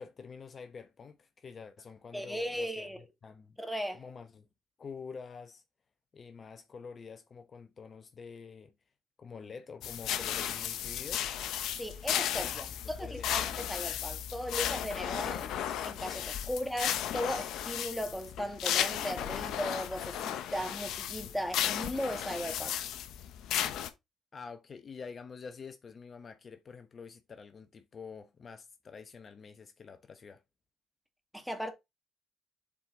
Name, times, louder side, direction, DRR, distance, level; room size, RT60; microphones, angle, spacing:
voice 1, 0.0-3.6 3.9-4.5 4.8-5.6 6.1-8.7 9.2-11.3 12.5-13.5 24.3-30.4, left 5 dB, 45° left, 1.1 m, -47 dB
voice 2, 2.1-3.0 3.6-4.0 11.8-15.5 15.8-22.8 31.3-31.7, equal, ahead, 2.1 m, -37 dB
sound 1, 9.8-23.9, left 10 dB, 80° left, 1.0 m, -34 dB
7.5 x 4.6 x 3.8 m
supercardioid pair, 65°, 0 cm